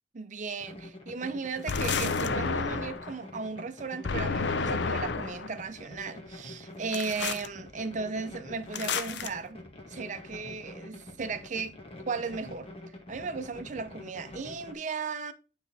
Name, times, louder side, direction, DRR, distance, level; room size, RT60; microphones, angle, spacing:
voice 1, 0.1-9.6 9.9-12.7 13.1-15.3, right 4 dB, 45° right, 0.6 m, -36 dB
sound 1, 0.6-14.7, left 1 dB, 35° left, 1.3 m, -46 dB
sound 2, 1.7-3.1 4.0-5.5 6.9-7.5 8.7-9.3, left 4 dB, 80° left, 0.6 m, -30 dB
9.5 x 3.5 x 4.0 m
head